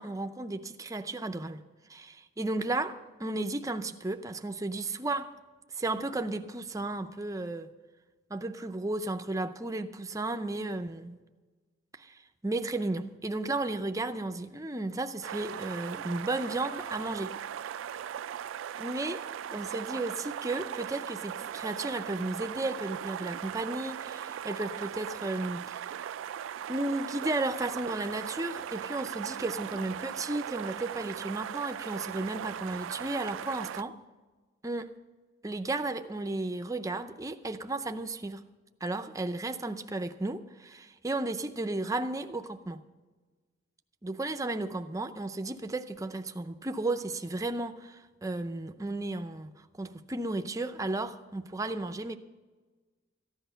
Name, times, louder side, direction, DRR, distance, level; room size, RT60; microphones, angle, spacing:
voice 1, 0.0-1.6 1.9-5.3 5.7-7.7 8.3-11.2 12.0-17.3 18.8-19.2 19.5-25.8 26.7-33.9 34.6-34.9 35.4-38.4 38.8-42.8 44.0-49.5 49.8-52.2, right 2 dB, 15° right, 8 dB, 0.5 m, -34 dB
sound 1, 15.2-33.8, right 9 dB, 75° right, 0.3 m, -39 dB
14.5 x 10.5 x 5.6 m, 1.3 s
head